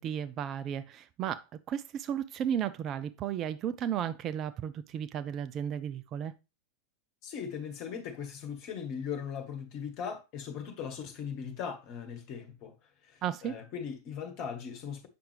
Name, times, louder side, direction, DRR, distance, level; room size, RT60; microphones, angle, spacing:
voice 1, 0.0-6.3 13.2-13.5, right 9 dB, 30° right, 0.4 m, -34 dB
voice 2, 7.2-12.7 13.0-15.1, left 7 dB, 40° left, 1.5 m, -39 dB
7.6 x 5.8 x 3.3 m
figure-of-eight pair, 90°, 0 cm